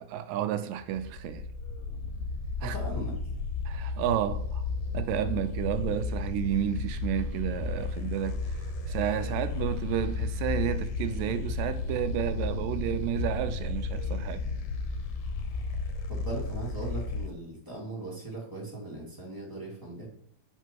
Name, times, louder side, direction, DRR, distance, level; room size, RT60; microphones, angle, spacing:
voice 1, 0.0-1.5 2.6-2.8 3.7-4.6 4.9-8.6 8.9-14.4, right 10 dB, 80° right, 2.1 m, -31 dB
sound 1, 0.8-17.3, left 3 dB, 85° left, 2.4 m, -33 dB
voice 2, 2.6-3.1 16.1-20.1, right 2 dB, 10° right, 1.1 m, -38 dB
7.0 x 4.4 x 4.5 m
omnidirectional pair, 4.1 m